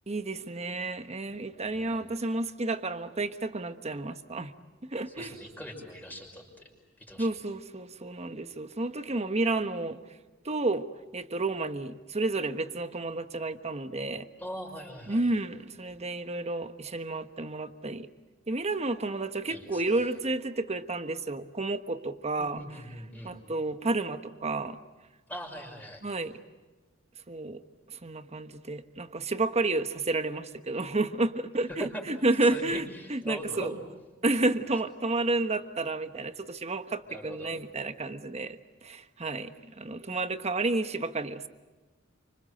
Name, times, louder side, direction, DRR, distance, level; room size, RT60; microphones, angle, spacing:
voice 1, 0.1-4.5 4.8-5.3 7.2-10.0 10.4-10.9 11.1-14.3 15.1-18.1 18.5-22.8 23.2-24.8 26.0-26.4 27.3-27.6 27.9-33.7 34.2-41.5, right 2 dB, 35° right, 9 dB, 1.3 m, -31 dB
voice 2, 1.6-2.0 5.2-6.6 7.1-7.3 14.4-15.2 19.5-19.8 22.4-23.3 25.3-26.0 31.8-32.0 32.4-33.7 37.0-37.5, equal, 10° left, 2 dB, 5.8 m, -41 dB
29.0 x 26.0 x 7.8 m, 1.2 s
head